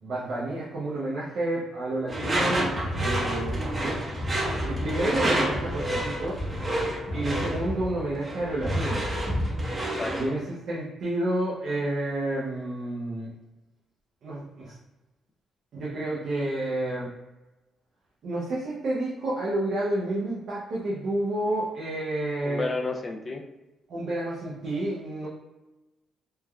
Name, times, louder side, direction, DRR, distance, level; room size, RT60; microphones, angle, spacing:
voice 1, 0.0-4.0 4.6-6.4 7.1-9.0 10.1-13.3 14.2-14.7 15.7-17.1 18.2-22.7 23.9-25.3, right 1 dB, 65° right, -7 dB, 0.7 m, -30 dB
Door / Screech, 2.1-10.3, right 1 dB, 30° right, 0.8 m, -28 dB
voice 2, 9.9-10.4 22.4-23.4, left 3 dB, 30° left, 3 dB, 0.4 m, -32 dB
3.3 x 2.1 x 2.3 m, 1.0 s
cardioid pair, 90°, 0 cm